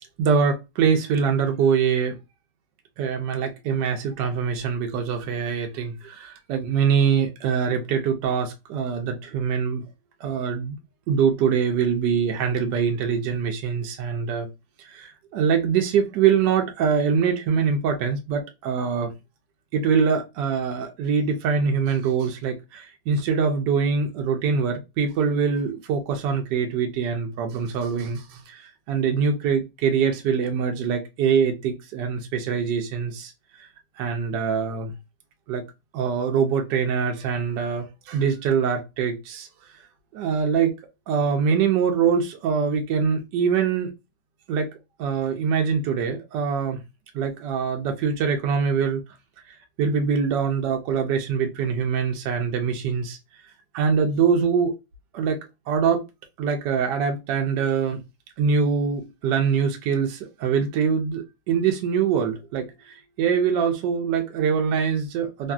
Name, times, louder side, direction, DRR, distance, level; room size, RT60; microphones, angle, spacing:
voice 1, 0.2-2.2 3.0-9.8 10.2-10.8 11.1-14.5 14.8-19.1 19.7-33.3 33.6-33.7 34.0-34.9 35.5-35.6 35.9-39.5 40.1-40.7 41.1-43.9 44.5-44.7 45.0-46.8 47.1-49.0 49.8-53.2 53.7-54.7 55.1-55.4 55.7-56.0 56.4-58.0 58.4-65.5, right 6 dB, 75° right, 1.0 m, -24 dB
3.2 x 2.6 x 2.3 m
omnidirectional pair, 2.3 m